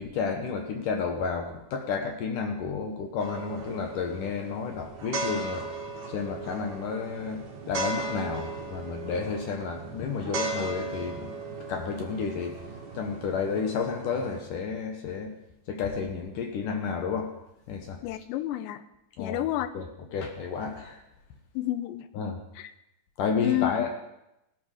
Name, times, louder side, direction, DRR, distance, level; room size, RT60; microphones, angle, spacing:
voice 1, 0.0-5.7 6.1-11.3 11.7-12.6 12.9-15.3 15.7-17.3 17.7-18.0 19.2-19.4 19.7-19.8 20.1-21.0 22.1-22.4 23.2-24.0, left 5 dB, 70° left, 4 dB, 2.1 m, -31 dB
sound 1, 3.2-14.4, right 3 dB, 45° right, 1.4 m, -37 dB
voice 2, 18.0-18.8 19.2-19.7 21.6-22.1 22.6-22.7 23.4-23.7, left 15 dB, 90° left, 12 dB, 3.0 m, -29 dB
18.0 x 12.0 x 4.9 m, 0.89 s
omnidirectional pair, 5.0 m